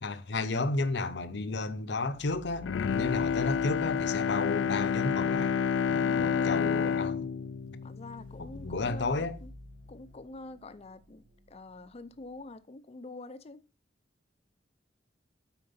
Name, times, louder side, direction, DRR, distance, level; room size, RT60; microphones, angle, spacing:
voice 1, 0.0-5.6 5.9-7.3 8.4-9.4, left 3 dB, 70° left, 0.7 m, -32 dB
sound 1, 0.6-12.5, equal, 80° right, 1.5 m, -53 dB
Bowed string instrument, 2.6-8.8 9.2-9.3, left 7 dB, 85° left, 0.4 m, -29 dB
voice 2, 5.9-7.1 7.8-9.5 9.9-13.7, left 2 dB, 35° left, 0.6 m, -46 dB
9.4 x 4.5 x 5.3 m
head